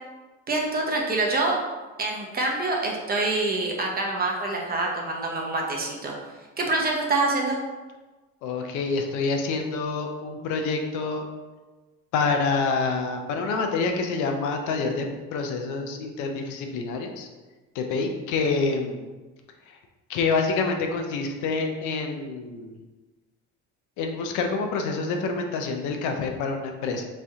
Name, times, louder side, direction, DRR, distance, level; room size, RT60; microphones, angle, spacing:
voice 1, 0.5-1.6 2.0-6.1 6.6-7.6, right 2 dB, 30° right, -1 dB, 0.8 m, -26 dB
voice 2, 8.4-11.2 12.1-17.3 17.7-19.1 19.7-19.8 20.1-22.8 24.0-27.1, left 4 dB, 80° left, 4 dB, 0.6 m, -27 dB
3.1 x 2.6 x 3.5 m, 1.2 s
cardioid pair, 90°, 30 cm